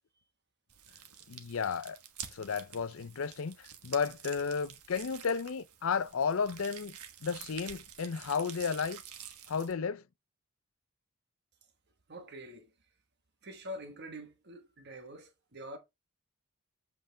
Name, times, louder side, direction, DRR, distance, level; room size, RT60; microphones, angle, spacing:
sound 1, 0.7-9.7, right 9 dB, 90° right, 1.3 m, -49 dB
voice 1, 1.3-2.0 2.3-7.0 7.2-9.0 9.5-10.0, left 5 dB, 65° left, 0.5 m, -33 dB
voice 2, 12.1-12.9 13.4-15.8, equal, 50° right, 1.4 m, -46 dB
7.8 x 5.1 x 3.3 m
head